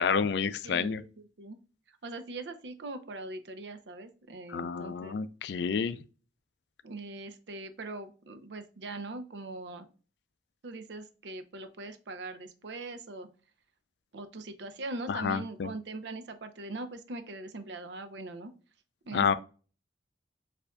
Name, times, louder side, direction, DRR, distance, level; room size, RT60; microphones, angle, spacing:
voice 1, 0.0-1.0 4.5-6.0 15.1-15.7 19.1-19.4, left 6 dB, 70° left, 0.3 m, -29 dB
voice 2, 0.6-1.6 2.0-5.2 6.8-9.9 10.6-13.3 14.1-18.5 19.1-19.4, right 2 dB, 80° right, 0.6 m, -41 dB
6.6 x 2.6 x 2.2 m
head